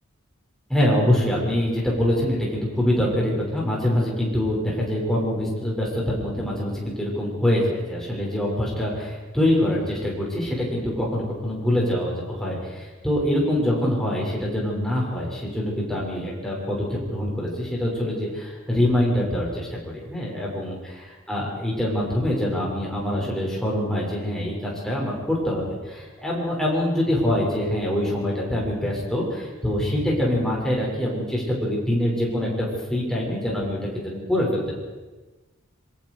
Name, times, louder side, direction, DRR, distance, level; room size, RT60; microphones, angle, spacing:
voice 1, 0.7-34.7, left 1 dB, 5° left, -4 dB, 6.6 m, -24 dB
26.5 x 23.5 x 5.0 m, 1.2 s
head